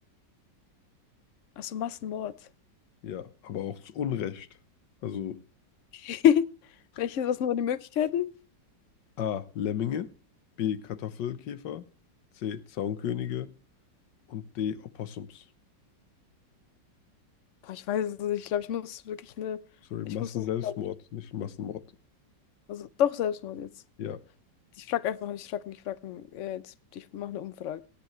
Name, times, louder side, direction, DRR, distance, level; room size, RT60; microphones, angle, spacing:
voice 1, 1.6-2.3 5.9-6.4 7.0-8.3 17.6-19.6 20.0-20.7 22.7-23.7 24.8-27.8, left 10 dB, 55° left, 0.9 m, -29 dB
voice 2, 3.0-4.5 5.0-5.4 9.2-10.1 10.6-11.8 12.4-13.5 14.3-15.4 19.9-21.8 24.0-24.2, left 9 dB, 75° left, 1.6 m, -33 dB
18.5 x 10.5 x 3.2 m
omnidirectional pair, 2.0 m